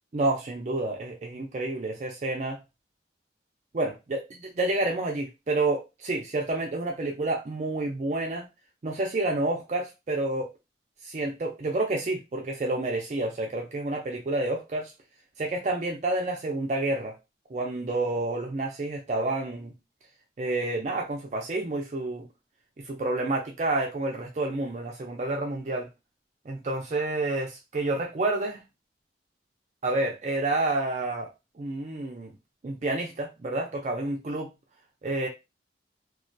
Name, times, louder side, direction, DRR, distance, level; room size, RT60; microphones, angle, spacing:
voice 1, 0.1-2.6 3.7-8.5 8.8-10.5 11.0-14.9 15.4-17.2 17.5-19.7 20.4-22.3 22.9-25.9 26.5-28.6 29.8-31.3 31.6-32.3 32.6-34.5 35.0-35.3, right 2 dB, 40° right, 1 dB, 0.4 m, -29 dB
2.3 x 2.1 x 2.5 m, 0.24 s
head